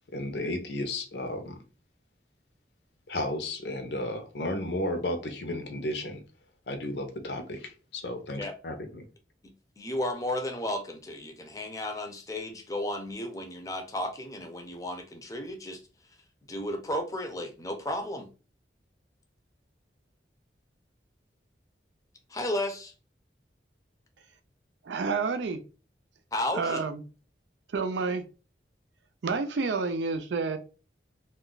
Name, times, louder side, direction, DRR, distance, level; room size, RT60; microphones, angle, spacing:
voice 1, 0.1-1.6 3.1-6.2 6.7-9.1, left 1 dB, 75° left, 0.7 m, -33 dB
voice 2, 9.4-15.8 16.5-18.3 22.3-22.9 26.3-26.8, left 1 dB, 20° left, 0.5 m, -33 dB
voice 3, 24.8-25.6 26.5-27.0 27.7-28.2 29.2-30.6, right 4 dB, 90° right, 0.4 m, -29 dB
2.4 x 2.1 x 3.8 m
head